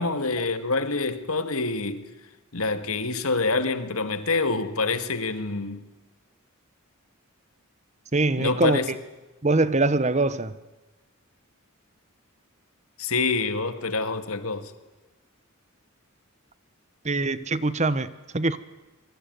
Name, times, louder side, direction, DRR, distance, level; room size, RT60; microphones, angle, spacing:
voice 1, 0.0-2.0 2.5-5.8 8.4-8.9 13.0-14.7, left 3 dB, 80° left, 2.1 m, -26 dB
voice 2, 8.1-8.8 9.4-10.5 17.0-18.6, right 2 dB, 30° right, 1.0 m, -23 dB
26.0 x 23.5 x 9.4 m
head